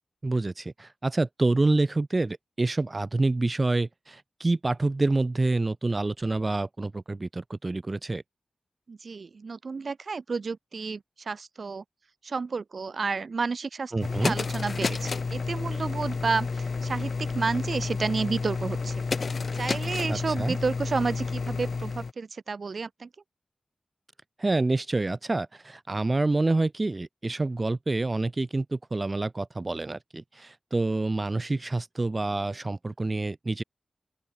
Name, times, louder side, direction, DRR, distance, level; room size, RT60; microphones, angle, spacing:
voice 1, 0.2-8.2 13.9-14.3 20.1-20.5 24.4-33.6, right 2 dB, 35° right, 1.6 m, -27 dB
voice 2, 8.9-11.8 12.2-19.0 19.6-23.1, right 4 dB, 65° right, 5.5 m, -31 dB
sound 1, 14.0-22.1, left 4 dB, 65° left, 3.5 m, -30 dB
open air
cardioid pair, 60°, 0 cm